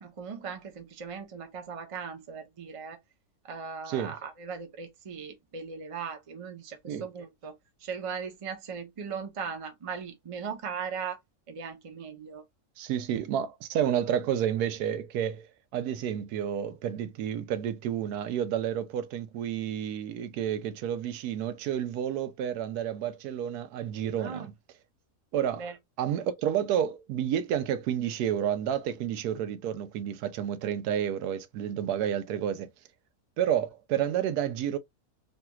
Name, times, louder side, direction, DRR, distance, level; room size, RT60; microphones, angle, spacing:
voice 1, 0.0-3.0 3.5-11.2 11.5-12.4 24.2-24.5 25.6-25.7, right 6 dB, 40° right, 0.4 m, -38 dB
voice 2, 12.8-24.5 25.3-25.6 26.0-32.7 33.4-34.8, right 9 dB, 90° right, 1.1 m, -30 dB
3.3 x 2.3 x 2.8 m
omnidirectional pair, 1.6 m